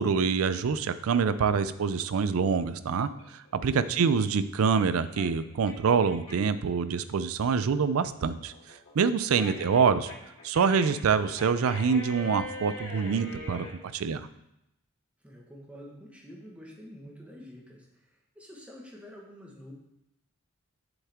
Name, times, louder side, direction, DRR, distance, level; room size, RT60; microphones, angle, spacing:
voice 1, 0.0-3.1 3.6-8.5 9.0-10.1 10.4-14.3, right 6 dB, 80° right, 14 dB, 0.4 m, -25 dB
sound 1, 3.1-6.6 7.0-13.7, left 2 dB, 90° left, 2.2 m, -43 dB
voice 2, 3.7-4.2 9.3-10.1 15.2-19.7, equal, 5° right, -3 dB, 1.4 m, -48 dB
7.2 x 6.8 x 3.6 m, 0.83 s
head